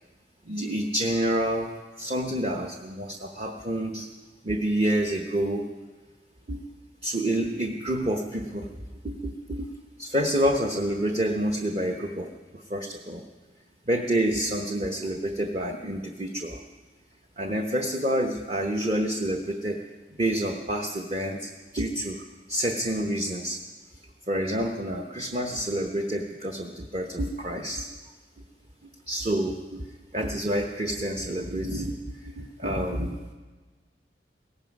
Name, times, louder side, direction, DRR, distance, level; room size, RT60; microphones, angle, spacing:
voice 1, 0.4-4.1 4.4-5.7 6.5-6.6 7.0-8.7 9.0-9.7 10.0-13.2 13.9-16.6 17.4-19.8 20.2-23.6 24.3-27.9 29.1-33.2, right 1 dB, 35° right, 2 dB, 0.9 m, -28 dB
17.5 x 15.5 x 5.3 m, 1.3 s
head